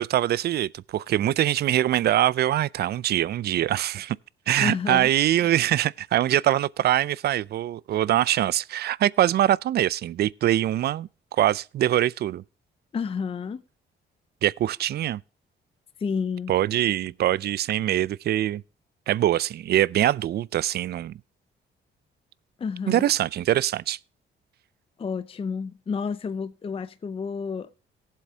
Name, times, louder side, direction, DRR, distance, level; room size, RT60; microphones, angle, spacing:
voice 1, 0.0-4.2 4.5-12.4 14.4-15.2 16.5-18.6 19.1-21.1 22.9-24.0, right 12 dB, 55° right, 0.4 m, -23 dB
voice 2, 4.6-5.1 12.9-13.6 16.0-16.5 22.6-23.1 25.0-27.7, left 5 dB, 30° left, 0.5 m, -30 dB
18.0 x 7.6 x 2.8 m
cardioid pair, 90°, 20 cm